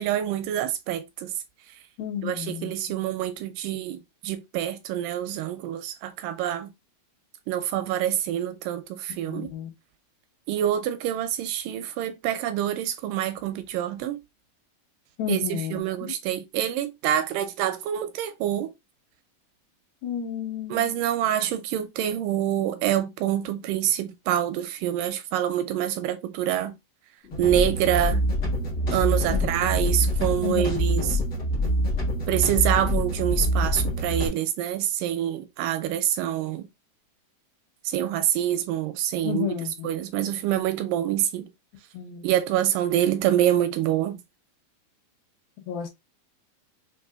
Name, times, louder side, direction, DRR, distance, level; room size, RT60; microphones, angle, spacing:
voice 1, 0.0-1.3 2.2-6.7 7.5-9.5 10.5-14.2 15.3-18.7 20.7-26.8 27.4-28.3 28.9-31.2 32.3-36.7 37.9-39.5 39.8-41.5 42.2-44.2, right 11 dB, 80° right, 2.0 m, -26 dB
voice 2, 2.0-2.7 9.3-9.7 15.2-15.8 20.0-21.0 29.3-29.5 30.4-31.1 39.2-39.9 41.9-42.3 45.7-45.9, left 9 dB, 85° left, 2.8 m, -31 dB
sound 1, 27.2-34.3, equal, 60° left, 0.9 m, -25 dB
6.0 x 2.7 x 2.3 m
omnidirectional pair, 4.2 m